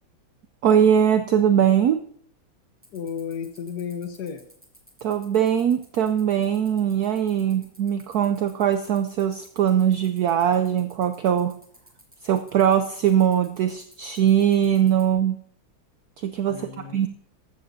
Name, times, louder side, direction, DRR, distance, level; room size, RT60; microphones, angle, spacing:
voice 1, 0.6-2.0 5.0-11.5 12.2-15.4 16.2-17.1, right 9 dB, 75° right, 8 dB, 0.8 m, -21 dB
sound 1, 2.8-15.1, right 1 dB, 5° right, 2.2 m, -52 dB
voice 2, 2.9-4.4 16.5-17.1, left 7 dB, 60° left, 8 dB, 1.4 m, -33 dB
13.5 x 13.5 x 2.7 m, 0.64 s
omnidirectional pair, 2.2 m